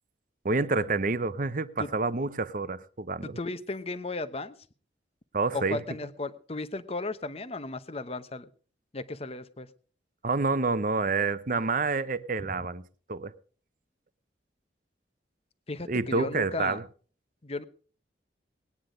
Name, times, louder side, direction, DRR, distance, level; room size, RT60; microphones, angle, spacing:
voice 1, 0.4-3.4 5.3-5.8 10.2-12.8 13.1-13.3 15.9-16.8, right 3 dB, 45° right, 0.7 m, -28 dB
voice 2, 3.2-4.5 5.5-8.5 8.9-9.7 12.4-12.6 15.7-16.8 17.4-17.6, left 3 dB, 35° left, 0.9 m, -35 dB
19.5 x 9.7 x 5.1 m
head